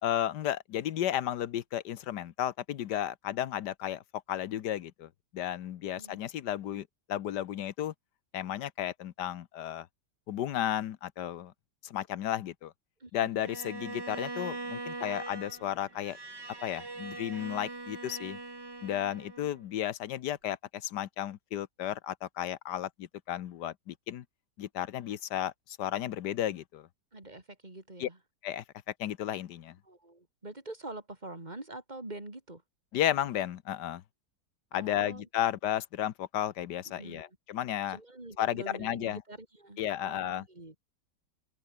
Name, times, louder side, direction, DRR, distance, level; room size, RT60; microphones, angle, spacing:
voice 1, 0.0-4.0 4.3-7.9 8.3-9.9 10.3-11.5 11.8-12.7 13.1-16.2 16.6-18.4 18.8-24.2 24.6-26.9 28.0-28.1 28.4-28.6 29.0-29.8 32.9-34.0 34.7-38.0 38.4-39.2 39.8-40.5, left 11 dB, 70° left, 1.5 m, -33 dB
voice 2, 13.0-13.6 27.1-28.2 29.8-32.6 34.7-35.2 36.9-37.4 37.9-40.8, right 2 dB, 25° right, 3.8 m, -45 dB
Bowed string instrument, 13.4-19.6, right 3 dB, 75° right, 6.1 m, -42 dB
omnidirectional pair, 1.9 m